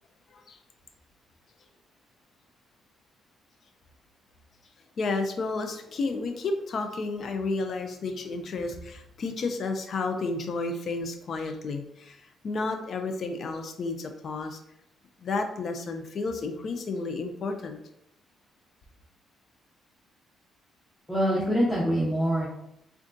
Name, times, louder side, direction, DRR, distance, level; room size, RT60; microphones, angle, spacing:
voice 1, 5.0-14.6 15.2-17.8, left 3 dB, 55° left, 5 dB, 0.4 m, -31 dB
voice 2, 21.1-22.5, equal, 5° left, -8 dB, 0.9 m, -24 dB
3.6 x 2.3 x 2.6 m, 0.78 s
cardioid pair, 90°, 0 cm